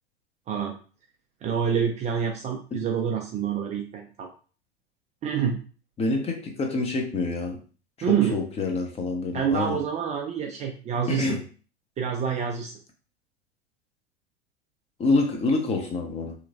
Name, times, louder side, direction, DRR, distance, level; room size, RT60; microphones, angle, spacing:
voice 1, 1.4-4.3 5.2-5.6 8.0-8.4 9.3-11.4 12.0-12.7, right 7 dB, 25° right, 2 dB, 0.5 m, -27 dB
voice 2, 6.0-7.6 8.1-9.8 11.1-11.4 15.0-16.3, left 3 dB, 20° left, 3 dB, 0.7 m, -26 dB
3.1 x 2.9 x 2.5 m, 0.38 s
figure-of-eight pair, 85°, 31 cm